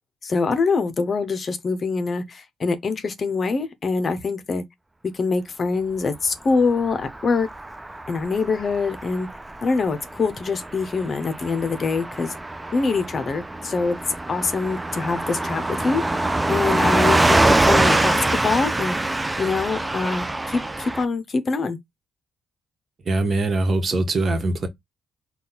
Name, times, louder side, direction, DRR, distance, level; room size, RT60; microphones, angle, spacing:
voice 1, 0.2-4.6 5.1-7.5 8.1-9.3 9.6-12.4 12.7-14.0 14.3-21.8, left 4 dB, 40° left, 0.7 m, -24 dB
Car passing by / Truck, 6.7-21.0, right 2 dB, 15° right, 0.4 m, -24 dB
voice 2, 23.0-24.7, right 2 dB, 45° right, 1.2 m, -22 dB
4.1 x 2.3 x 3.8 m
cardioid pair, 90°, 0 cm